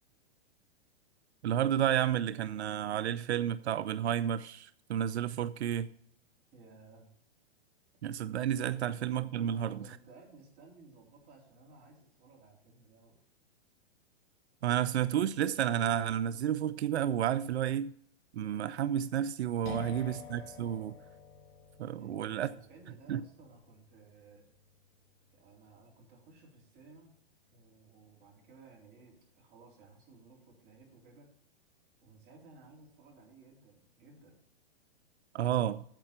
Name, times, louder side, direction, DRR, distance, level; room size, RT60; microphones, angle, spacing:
voice 1, 1.4-5.9 8.0-9.8 14.6-17.9 18.3-20.9 21.8-22.5 23.1-23.2 35.3-35.8, right 10 dB, 90° right, 0.5 m, -31 dB
voice 2, 6.5-7.1 9.5-13.2 22.0-24.5 25.3-27.2 27.5-31.3 32.0-34.4, right 3 dB, 30° right, 3.9 m, -57 dB
sound 1, 19.6-27.2, left 6 dB, 65° left, 2.3 m, -50 dB
9.1 x 7.5 x 5.8 m
hypercardioid pair, 140°, 32 cm